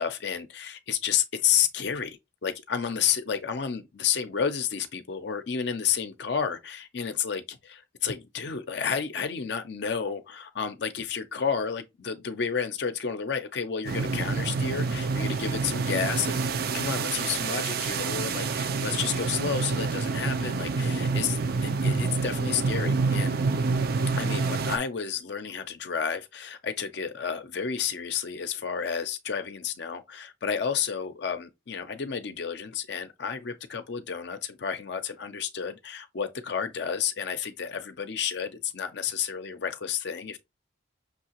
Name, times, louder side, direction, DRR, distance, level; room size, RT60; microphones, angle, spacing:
voice 1, 0.0-16.4 16.7-23.4 24.1-40.4, left 7 dB, 55° left, 0.5 m, -31 dB
sound 1, 13.9-24.8, right 4 dB, 50° right, 0.4 m, -27 dB
5.9 x 2.8 x 2.9 m
head